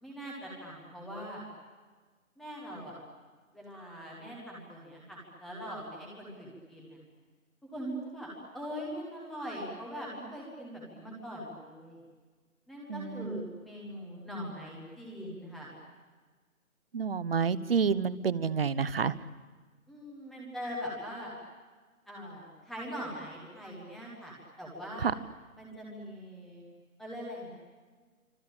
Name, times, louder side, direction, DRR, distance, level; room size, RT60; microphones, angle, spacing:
voice 1, 0.0-1.4 2.4-3.0 3.5-7.0 7.7-12.0 12.7-15.7 19.9-21.3 22.1-25.1 25.6-26.7 27.0-27.5, equal, ahead, -4 dB, 0.8 m, -42 dB
voice 2, 12.9-13.5 16.9-19.1 25.0-25.1, right 6 dB, 45° right, 18 dB, 1.0 m, -29 dB
27.0 x 25.5 x 8.8 m, 1.4 s
figure-of-eight pair, 155°, 42 cm